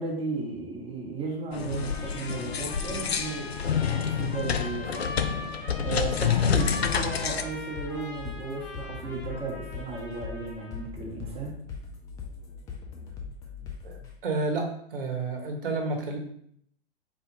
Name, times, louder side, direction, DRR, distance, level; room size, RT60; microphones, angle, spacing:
voice 1, 0.0-11.6, right 3 dB, 20° right, -3 dB, 1.3 m, -35 dB
sound 1, 1.5-7.4, left 7 dB, 80° left, 0.5 m, -28 dB
Trumpet, 1.7-10.9, left 2 dB, 55° left, 1.4 m, -42 dB
sound 2, 6.3-14.1, left 6 dB, 10° left, 0.3 m, -40 dB
voice 2, 13.8-16.2, right 3 dB, 60° right, 3 dB, 1.1 m, -30 dB
4.2 x 2.7 x 3.7 m, 0.67 s
figure-of-eight pair, 105°, 31 cm